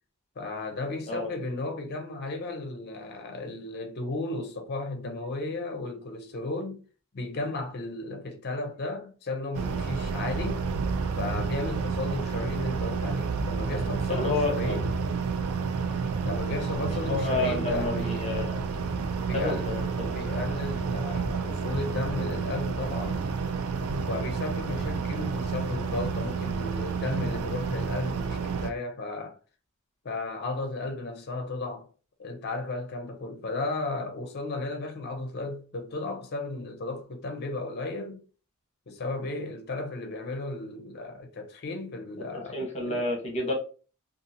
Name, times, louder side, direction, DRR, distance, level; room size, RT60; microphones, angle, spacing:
voice 1, 0.4-6.8 7.1-10.7 11.2-14.9 16.2-18.6 19.2-19.8 20.1-23.2 24.0-29.4 30.0-31.9 32.2-38.2 38.9-42.6 42.9-43.0, left 2 dB, 50° left, 0.5 m, -34 dB
sound 1, 9.5-28.7, right 5 dB, 80° right, 0.4 m, -30 dB
voice 2, 14.1-14.8 17.1-18.6 19.3-20.1 42.3-43.5, left 2 dB, 30° left, 0.9 m, -30 dB
2.7 x 2.4 x 2.6 m
head